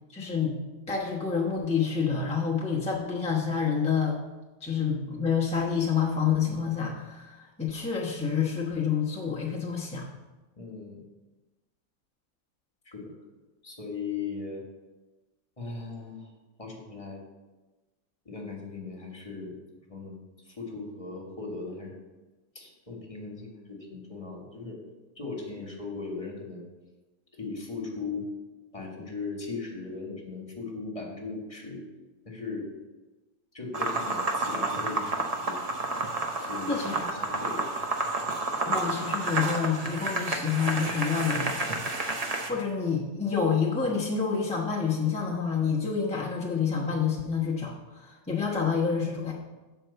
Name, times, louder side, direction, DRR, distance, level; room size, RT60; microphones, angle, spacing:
voice 1, 0.1-0.6 0.9-4.2 4.6-10.1 36.7-37.2 38.7-41.7 42.1-49.3, left 6 dB, 5° left, -4 dB, 0.6 m, -28 dB
voice 2, 10.6-11.0 12.8-13.0 13.6-14.6 15.6-16.3 16.6-17.2 18.2-19.5 19.9-20.2 20.4-21.9 22.5-24.8 25.2-26.6 27.3-28.3 28.7-31.8 32.2-32.7 33.5-35.7 36.4-37.7, left 4 dB, 20° left, -1 dB, 1.3 m, -38 dB
sound 1, 33.7-42.5, right 2 dB, 45° right, 0.5 m, -30 dB
7.4 x 4.6 x 6.7 m, 1.2 s
omnidirectional pair, 1.8 m